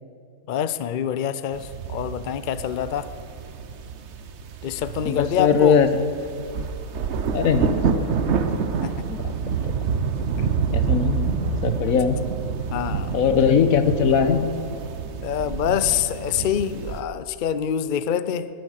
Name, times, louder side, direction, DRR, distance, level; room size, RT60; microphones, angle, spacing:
voice 1, 0.5-3.1 4.6-5.8 8.8-8.9 10.4-10.5 12.7-13.2 15.2-18.5, left 9 dB, 85° left, 13 dB, 0.4 m, -26 dB
sound 1, 1.5-17.0, right 6 dB, 50° right, 1.0 m, -28 dB
voice 2, 5.0-6.7 7.3-8.2 8.6-8.7 9.1-9.2 9.6-9.7 10.7-12.2 13.1-14.5, left 6 dB, 65° left, 9 dB, 1.4 m, -21 dB
20.5 x 9.5 x 6.5 m, 2.6 s
omnidirectional pair, 1.6 m